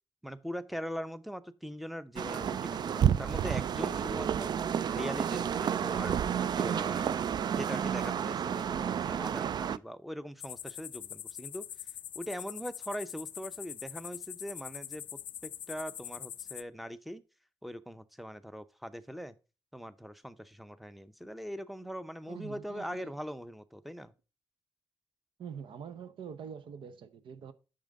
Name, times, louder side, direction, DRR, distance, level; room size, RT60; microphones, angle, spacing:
voice 1, 0.2-6.2 6.6-11.7 12.2-15.0 15.4-17.2 17.6-19.3 19.7-24.1, equal, ahead, 0.6 m, -41 dB
sound 1, 2.2-9.8, right 8 dB, 55° right, 0.4 m, -30 dB
sound 2, 10.4-16.6, left 10 dB, 80° left, 0.4 m, -43 dB
voice 2, 22.3-23.2 25.4-27.5, right 7 dB, 90° right, 0.8 m, -45 dB
8.7 x 6.4 x 3.7 m
wide cardioid pair, 135°, 8 cm